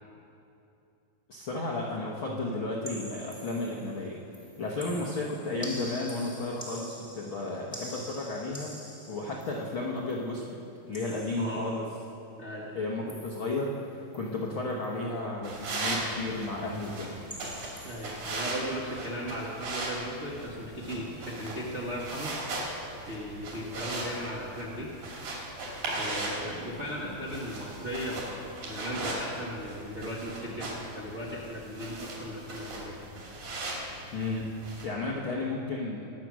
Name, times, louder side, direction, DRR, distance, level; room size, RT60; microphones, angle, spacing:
voice 1, 1.3-4.2 4.6-11.9 12.7-17.2 34.1-36.1, left 2 dB, 65° left, -3 dB, 1.2 m, -33 dB
sound 1, 2.8-4.0 4.3-10.3 10.9-11.9 13.1-13.8 14.1-14.4 14.7-15.0 17.3-18.1, equal, 10° left, 1.1 m, -46 dB
voice 2, 11.3-11.7 12.4-12.7 17.8-22.3 23.1-24.9 25.9-33.0 35.0-35.2, equal, 50° right, -5 dB, 0.8 m, -37 dB
sound 2, 15.4-34.9, right 2 dB, 70° right, 4.5 m, -38 dB
22.0 x 7.7 x 6.1 m, 2.8 s
omnidirectional pair, 4.1 m